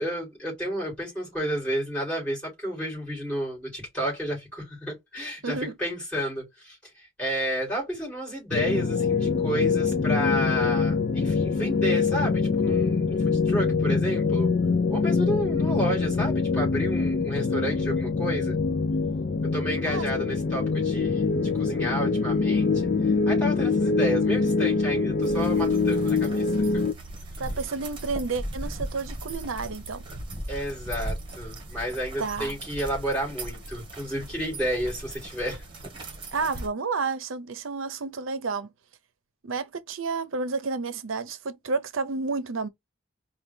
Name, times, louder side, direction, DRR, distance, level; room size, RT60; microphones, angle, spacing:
voice 1, 0.0-14.5 14.9-18.6 19.5-26.5 26.7-26.8 30.5-35.6, equal, 5° left, 3.0 m, -31 dB
voice 2, 5.4-5.7 19.8-20.1 27.4-30.0 32.2-32.5 36.3-38.7 39.4-42.7, right 4 dB, 75° right, 0.7 m, -30 dB
sound 1, 8.5-26.9, left 4 dB, 45° left, 0.3 m, -24 dB
sound 2, 25.2-36.7, right 1 dB, 25° right, 1.3 m, -38 dB
4.5 x 2.3 x 3.4 m
head